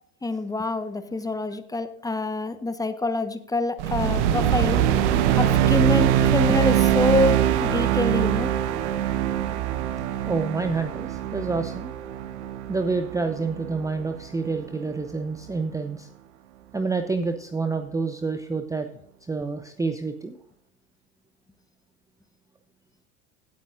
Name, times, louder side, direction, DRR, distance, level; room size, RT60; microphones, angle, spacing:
voice 1, 0.2-4.8 5.4-8.5, left 2 dB, 10° left, 10 dB, 1.1 m, -26 dB
sound 1, 3.8-14.3, right 10 dB, 60° right, 1.1 m, -23 dB
voice 2, 10.3-11.9 12.7-16.1 16.7-18.9 19.3-20.4, right 4 dB, 10° right, 8 dB, 0.7 m, -28 dB
17.0 x 8.9 x 2.5 m, 0.67 s
hypercardioid pair, 80°, 38 cm